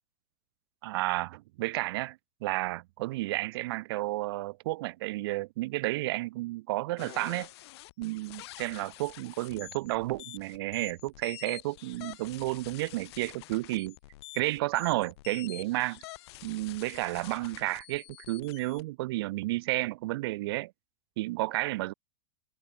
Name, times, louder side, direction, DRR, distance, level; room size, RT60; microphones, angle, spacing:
voice 1, 0.8-7.5 8.0-14.0 14.3-16.0 16.4-20.7 21.2-21.9, right 19 dB, 55° right, 0.4 m, -32 dB
sound 1, 7.0-18.8, left 18 dB, 60° left, 0.5 m, -48 dB
supercardioid pair, 175°, 15 cm